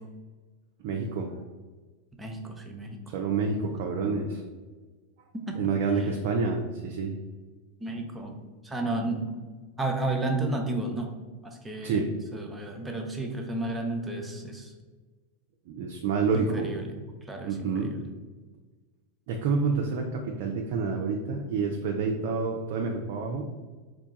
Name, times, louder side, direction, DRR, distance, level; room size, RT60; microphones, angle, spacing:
voice 1, 0.8-1.4 3.1-4.4 5.6-7.2 11.8-12.1 15.7-16.7 17.4-17.9 19.3-23.5, right 4 dB, 55° right, 2 dB, 0.4 m, -28 dB
voice 2, 2.2-3.0 5.3-5.6 7.8-8.4 8.6-9.3 9.8-11.1 11.4-12.0 12.3-14.7 16.3-16.9 17.3-18.0, right 2 dB, 10° right, 1 dB, 0.6 m, -32 dB
2.9 x 2.2 x 3.9 m, 1.3 s
hypercardioid pair, 95°, 0 cm